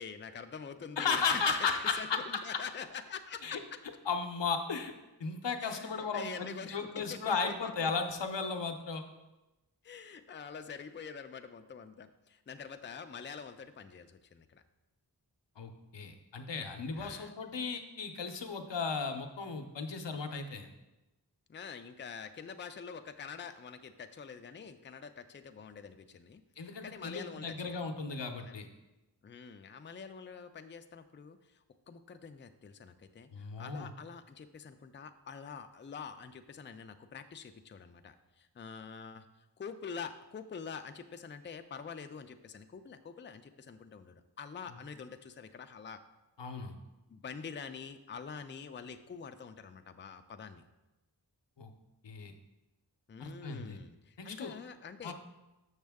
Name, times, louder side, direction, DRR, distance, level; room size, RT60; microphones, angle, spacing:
voice 1, 0.0-3.8 5.6-7.9 9.8-14.6 16.9-17.3 21.5-27.8 28.4-28.6 29.2-39.3 39.6-46.0 47.1-50.6 53.1-55.1, left 6 dB, 30° left, 8 dB, 0.4 m, -46 dB
voice 2, 1.0-2.2 3.4-3.6 4.1-4.9 5.2-9.0 15.6-20.7 26.6-28.7 33.3-33.9 46.4-46.7 51.6-51.7 52.0-52.3 53.2-53.8 54.2-54.5 55.0-55.1, left 5 dB, 90° left, 5 dB, 0.7 m, -35 dB
6.6 x 6.4 x 3.5 m, 1.0 s
wide cardioid pair, 50°, 42 cm